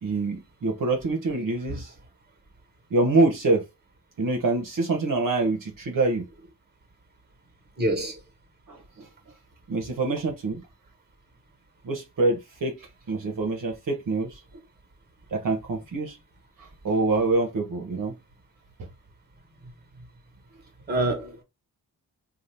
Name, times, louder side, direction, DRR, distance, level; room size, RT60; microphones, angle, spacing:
voice 1, 0.0-1.9 2.9-3.6 4.2-6.3 8.7-9.1 9.7-10.6 11.8-14.4 15.3-16.2 16.6-18.1, right 3 dB, 55° right, 1.0 m, -25 dB
voice 2, 7.8-8.2 19.6-19.7 20.0-20.1 20.9-21.4, right 1 dB, 25° right, 1.3 m, -27 dB
2.7 x 2.4 x 3.4 m
cardioid pair, 45°, 38 cm